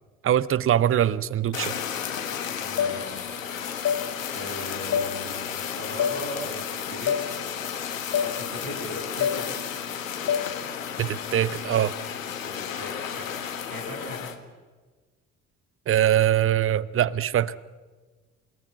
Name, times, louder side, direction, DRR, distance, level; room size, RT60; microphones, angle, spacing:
voice 1, 0.2-1.8 11.0-11.9 15.9-17.5, right 11 dB, 35° right, 19 dB, 0.9 m, -22 dB
Fire, 1.5-14.4, left 8 dB, 80° left, 1.5 m, -33 dB
voice 2, 2.5-3.4 4.3-7.5 8.2-9.4 12.4-13.2 13.7-14.2, left 1 dB, 85° right, -2 dB, 7.1 m, -38 dB
sound 1, 2.8-2.9 3.8-4.0 4.9-5.1 6.0-6.1 7.1-7.2 8.1-8.3 9.2-9.4 10.3-10.4, left 8 dB, 40° left, 1.3 m, -24 dB
28.5 x 18.5 x 8.1 m, 1.4 s
figure-of-eight pair, 50°, 39 cm